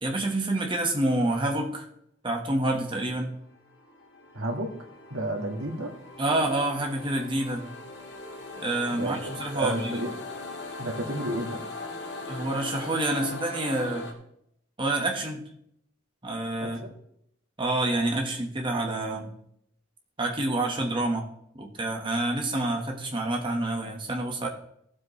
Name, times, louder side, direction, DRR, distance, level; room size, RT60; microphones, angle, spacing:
voice 1, 0.0-1.9 2.2-3.4 6.2-7.7 8.6-10.1 12.3-14.1 14.8-15.4 16.2-16.8 17.6-19.3 20.2-21.2 21.5-24.5, right 2 dB, 25° right, 1 dB, 1.5 m, -28 dB
sound 1, 3.4-14.1, left 2 dB, 60° left, 1.9 m, -40 dB
voice 2, 4.3-4.7 5.1-5.9 8.9-10.2 10.8-11.6 16.6-16.9, right 1 dB, 85° right, 1 dB, 1.9 m, -32 dB
16.0 x 7.6 x 3.3 m, 0.74 s
head